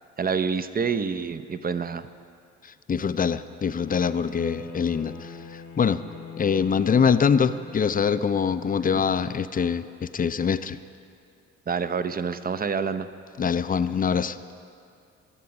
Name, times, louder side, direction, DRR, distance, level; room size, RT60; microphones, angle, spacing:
voice 1, 0.2-2.1 8.9-9.0 11.7-13.1, right 5 dB, 25° right, 12 dB, 0.7 m, -27 dB
voice 2, 2.9-6.0 6.4-10.8 13.4-14.4, left 6 dB, 25° left, 12 dB, 0.5 m, -24 dB
Bowed string instrument, 3.8-8.3, left 4 dB, 85° left, 1.5 m, -42 dB
22.5 x 7.6 x 5.3 m, 2.4 s
hypercardioid pair, 50°, 35 cm